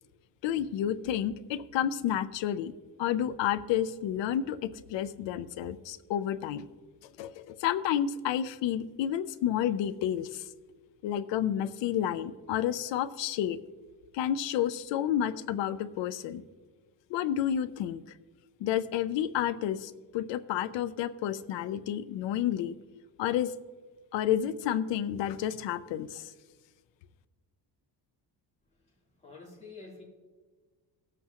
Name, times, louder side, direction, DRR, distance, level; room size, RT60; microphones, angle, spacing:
voice 1, 0.4-2.7 3.0-6.7 7.2-10.4 11.0-13.6 14.1-16.4 17.1-18.0 18.6-22.8 23.2-23.5 24.1-26.3, left 10 dB, 85° left, 13 dB, 0.7 m, -30 dB
voice 2, 29.2-30.0, left 3 dB, 15° left, -6 dB, 3.3 m, -47 dB
18.5 x 7.9 x 3.0 m, 1.4 s
cardioid pair, 155°, 43 cm